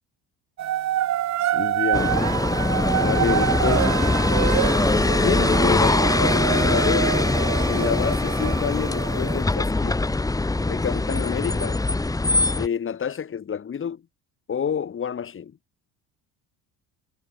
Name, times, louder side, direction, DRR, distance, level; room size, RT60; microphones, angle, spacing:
sound 1, 0.6-9.4, right 12 dB, 45° right, 0.9 m, -26 dB
voice 1, 1.5-2.3 3.0-4.0 5.2-7.3 7.7-10.1 10.7-11.8 12.5-14.0 14.5-15.5, left 7 dB, 30° left, 1.8 m, -28 dB
sound 2, 1.9-12.7, left 2 dB, 10° left, 1.0 m, -22 dB
cardioid pair, 110°, 40 cm